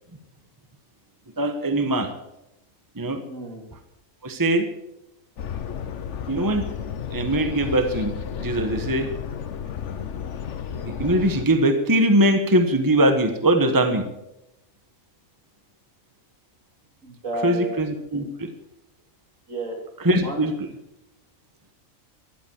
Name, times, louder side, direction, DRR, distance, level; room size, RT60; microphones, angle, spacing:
voice 1, 1.4-2.1 3.0-3.2 4.2-4.7 6.3-6.7 7.1-9.1 10.8-14.0 17.4-18.5 20.0-20.5, right 1 dB, 15° right, 7 dB, 1.2 m, -21 dB
voice 2, 3.3-3.6 17.0-17.7 18.1-18.3 19.5-19.8 20.2-20.5, right 1 dB, 65° right, 1 dB, 3.7 m, -32 dB
sound 1, 5.4-11.5, left 8 dB, 60° left, 1.2 m, -32 dB
14.5 x 11.0 x 7.2 m, 0.88 s
omnidirectional pair, 1.4 m